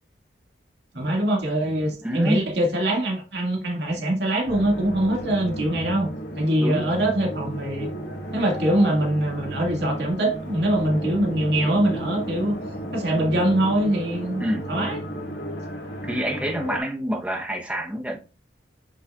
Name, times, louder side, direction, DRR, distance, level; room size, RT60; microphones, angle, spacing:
voice 1, 0.9-6.1 6.3-7.9 8.3-12.6 12.9-14.4 14.7-15.0, right 1 dB, 70° right, 2.1 m, -23 dB
voice 2, 2.0-2.4 6.6-6.9 14.4-14.7 16.0-18.2, equal, 5° right, 1.0 m, -27 dB
sound 1, 4.4-16.8, right 1 dB, 75° left, 2.2 m, -33 dB
8.7 x 5.6 x 2.4 m
head